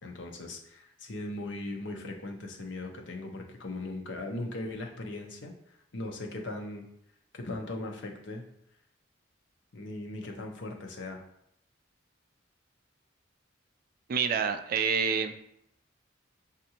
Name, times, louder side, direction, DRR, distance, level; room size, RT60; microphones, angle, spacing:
voice 1, 0.0-5.5 5.9-6.9 7.3-8.5 9.7-11.2, left 2 dB, 65° left, 2 dB, 0.7 m, -38 dB
voice 2, 14.1-15.4, right 6 dB, 45° right, 8 dB, 0.3 m, -28 dB
6.4 x 2.5 x 2.8 m, 0.76 s
head